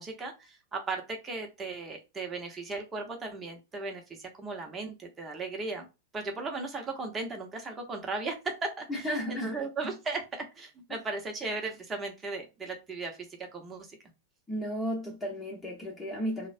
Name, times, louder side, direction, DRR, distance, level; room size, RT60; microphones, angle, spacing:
voice 1, 0.0-5.9 6.1-9.0 9.3-14.0, right 3 dB, 20° right, 0.8 m, -36 dB
voice 2, 8.9-9.9 14.5-16.5, equal, 15° left, 0.9 m, -34 dB
2.4 x 2.1 x 2.5 m
hypercardioid pair, 100°, 0 cm